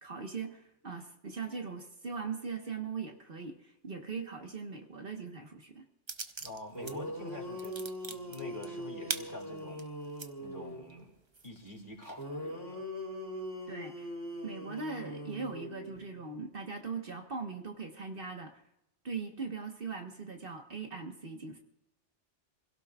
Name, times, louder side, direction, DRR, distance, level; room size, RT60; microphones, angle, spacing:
voice 1, 0.0-5.9 13.7-14.1 14.4-18.6 19.0-21.6, right 4 dB, 50° right, 3 dB, 1.5 m, -40 dB
sound 1, 6.1-7.0 7.3-10.3 10.8-10.9 11.3-12.2, right 4 dB, 30° right, 0.7 m, -41 dB
voice 2, 6.4-7.8 8.1-9.8 10.4-11.1 11.4-12.9, left 1 dB, 45° left, 1 dB, 2.9 m, -46 dB
sound 2, 6.5-6.6 6.7-10.9 12.2-16.2, equal, 20° left, 3.0 m, -41 dB
28.0 x 16.5 x 2.4 m, 0.86 s
omnidirectional pair, 1.2 m